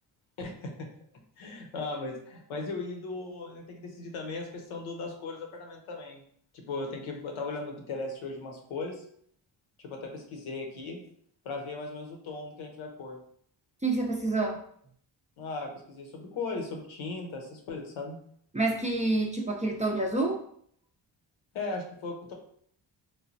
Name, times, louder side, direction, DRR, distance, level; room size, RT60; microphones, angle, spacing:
voice 1, 0.4-0.9 1.4-6.2 6.5-9.0 9.8-11.0 11.4-13.2 15.4-18.2 21.5-22.3, left 3 dB, 75° left, 2 dB, 0.8 m, -37 dB
voice 2, 13.8-14.6 18.5-20.4, right 2 dB, 15° right, 0 dB, 0.5 m, -28 dB
3.1 x 2.2 x 2.5 m, 0.64 s
supercardioid pair, 45°, 49 cm